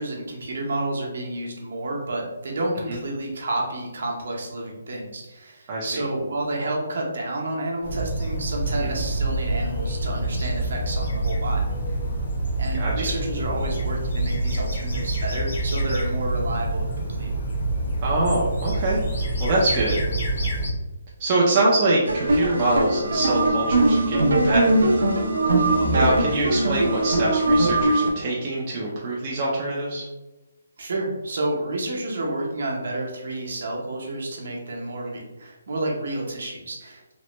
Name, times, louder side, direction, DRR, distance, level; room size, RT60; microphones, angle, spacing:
voice 1, 0.0-12.0 12.6-17.3 25.4-25.7 30.8-37.1, right 2 dB, 55° right, -1 dB, 0.7 m, -30 dB
voice 2, 5.7-6.0 8.8-8.9 12.8-12.9 18.0-19.0 19.4-20.0 21.2-24.8 25.9-30.1, right 2 dB, 20° right, -5 dB, 0.4 m, -24 dB
sound 1, 7.8-20.7, right 1 dB, 60° left, 0.8 m, -26 dB
sound 2, 22.1-28.1, right 2 dB, 90° right, 0.6 m, -21 dB
3.0 x 2.1 x 2.9 m, 1.1 s
hypercardioid pair, 175°, 0 cm